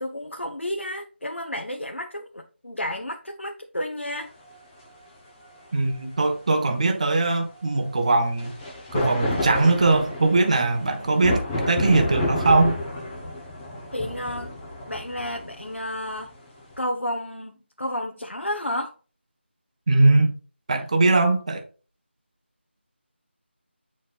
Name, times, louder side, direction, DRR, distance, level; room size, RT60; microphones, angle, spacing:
voice 1, 0.0-4.3 13.9-14.5 14.9-16.3 16.8-18.9, left 1 dB, 85° left, 1.2 m, -31 dB
sound 1, 4.5-4.6 8.4-16.7, left 1 dB, 10° left, 1.1 m, -30 dB
voice 2, 5.7-8.5 8.9-12.8 19.9-20.4 20.7-21.6, right 3 dB, 35° right, 1.2 m, -21 dB
9.8 x 4.3 x 2.4 m
figure-of-eight pair, 165°, 6 cm